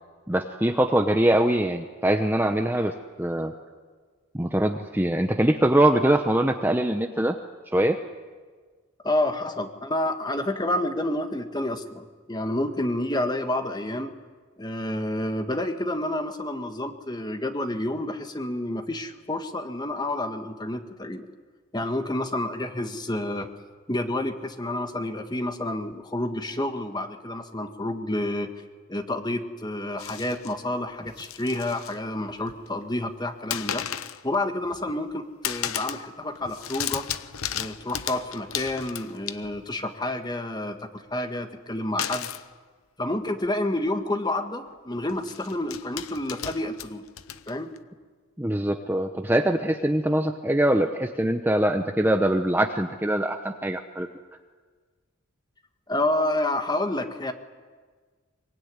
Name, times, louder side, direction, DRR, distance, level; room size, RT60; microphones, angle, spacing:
voice 1, 0.3-2.9 3.2-3.5 4.3-7.4 7.7-8.0 48.4-54.1, right 1 dB, 10° right, 5 dB, 0.9 m, -23 dB
voice 2, 9.0-14.2 14.6-21.3 21.7-23.5 23.9-28.5 28.9-33.8 34.2-37.1 37.5-42.3 43.0-47.0 47.5-47.7 55.9-57.3, left 1 dB, 20° left, 7 dB, 1.6 m, -29 dB
sound 1, 30.0-30.5 31.1-32.0 32.3-32.8 33.5-34.2 34.6-35.1 35.4-36.1 36.4-39.7 42.0-42.5 43.4-43.5 43.8-44.0 45.1-47.8, left 10 dB, 80° left, 0.9 m, -34 dB
24.0 x 23.5 x 9.7 m, 1.5 s
head